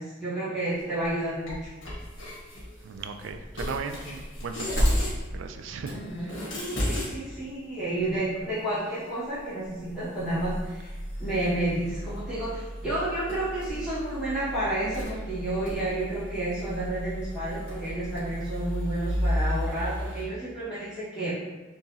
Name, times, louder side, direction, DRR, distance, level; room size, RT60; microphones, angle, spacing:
voice 1, 0.0-1.6 5.9-6.3 6.8-21.3, right 1 dB, 5° right, -13 dB, 1.4 m, -31 dB
sound 1, 0.8-1.1 1.5-5.3 5.5-5.6 5.9-7.1 7.4-7.5 8.0-9.1 9.3-9.4 9.7-20.3, equal, 75° left, 1.4 m, -33 dB
voice 2, 2.8-5.0 5.3-6.4, right 5 dB, 75° right, 7 dB, 0.3 m, -37 dB
3.5 x 2.9 x 2.7 m, 1.2 s
head